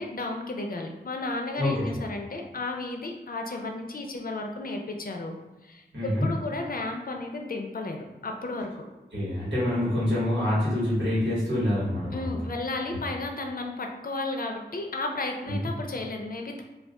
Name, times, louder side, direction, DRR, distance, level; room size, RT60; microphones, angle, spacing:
voice 1, 0.0-5.3 5.6-8.8 12.1-16.6, left 2 dB, 55° left, 3 dB, 0.4 m, -33 dB
voice 2, 1.6-2.0 5.9-6.3 9.1-12.3 15.5-15.7, left 1 dB, 90° right, -10 dB, 1.2 m, -26 dB
2.3 x 2.2 x 3.6 m, 1.1 s
wide cardioid pair, 50°, 18 cm